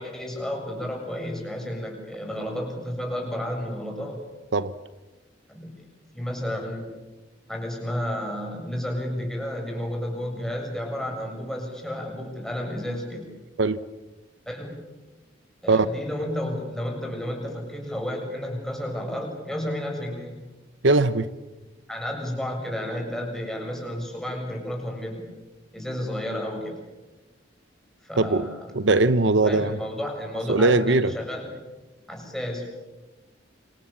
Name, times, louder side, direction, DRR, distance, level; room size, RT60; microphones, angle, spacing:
voice 1, 0.0-4.2 5.5-5.8 6.1-6.9 7.5-13.3 14.4-14.8 15.6-20.4 21.9-25.2 25.7-26.8 28.0-28.7 29.4-31.5 32.1-32.7, left 1 dB, 5° left, 1 dB, 7.0 m, -32 dB
voice 2, 20.8-21.3 28.2-28.5 28.7-29.8 30.5-31.1, right 3 dB, 70° right, 14 dB, 0.9 m, -20 dB
29.0 x 25.5 x 7.4 m, 1.1 s
head